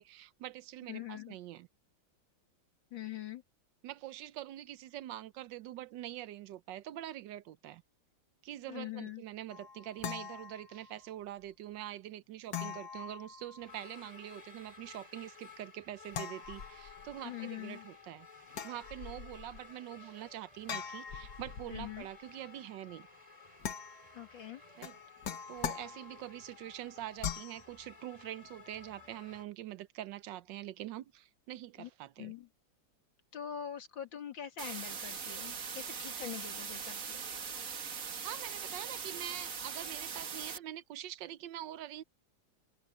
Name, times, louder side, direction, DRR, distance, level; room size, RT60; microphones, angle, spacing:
voice 1, 0.0-1.7 3.8-7.8 8.4-18.3 18.6-23.1 24.8-25.0 25.5-32.3 38.0-42.0, right 13 dB, 75° right, 1.3 m, -45 dB
voice 2, 0.9-1.3 2.9-3.4 8.7-9.2 17.2-17.8 21.7-22.1 24.1-24.6 31.8-31.9 32.2-32.5 33.3-37.2, left 10 dB, 75° left, 2.9 m, -43 dB
sound 1, 9.5-11.1 12.5-13.9 16.1-17.2 18.5-19.6 20.7-22.1 23.6-24.3 24.8-26.4 27.2-27.6, left 7 dB, 60° left, 1.8 m, -42 dB
sound 2, 13.6-29.4, left 5 dB, 20° left, 3.6 m, -55 dB
sound 3, 34.6-40.6, right 6 dB, 45° right, 1.6 m, -41 dB
omnidirectional pair, 2.1 m